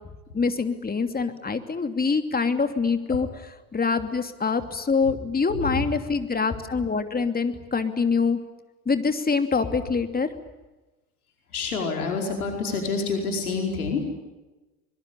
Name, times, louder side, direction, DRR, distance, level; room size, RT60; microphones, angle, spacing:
voice 1, 0.3-3.3 3.7-8.4 8.9-10.3, left 4 dB, 20° left, 8 dB, 2.9 m, -25 dB
voice 2, 5.5-5.8 11.5-14.1, left 4 dB, 90° left, 2 dB, 5.0 m, -28 dB
24.5 x 22.0 x 10.0 m, 1.1 s
hypercardioid pair, 75°, 43 cm